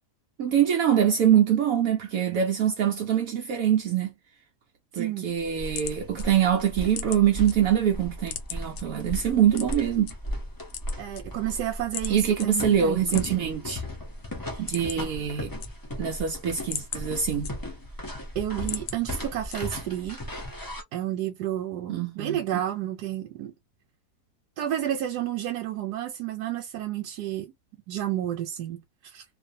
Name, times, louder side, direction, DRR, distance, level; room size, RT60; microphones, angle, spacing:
voice 1, 0.4-4.1 5.0-10.1 12.1-13.8 14.6-15.5 16.0-17.6 21.9-22.4, right 9 dB, 70° right, 0.9 m, -24 dB
voice 2, 4.9-5.3 11.0-13.2 18.4-20.2 20.9-23.5 24.6-27.5 27.9-29.2, right 12 dB, 90° right, 1.2 m, -31 dB
sound 1, 5.3-7.5 7.9-8.8 9.5-10.1 10.6-11.6 11.9-12.1 12.4-12.5 13.0-13.8 14.1-14.2 14.5-15.1 15.4-16.1 16.5-17.9 18.3-19.0 19.5-19.9, left 9 dB, 75° left, 1.2 m, -37 dB
sound 2, 5.4-20.8, left 1 dB, 30° left, 0.4 m, -37 dB
2.6 x 2.4 x 2.6 m
omnidirectional pair, 1.7 m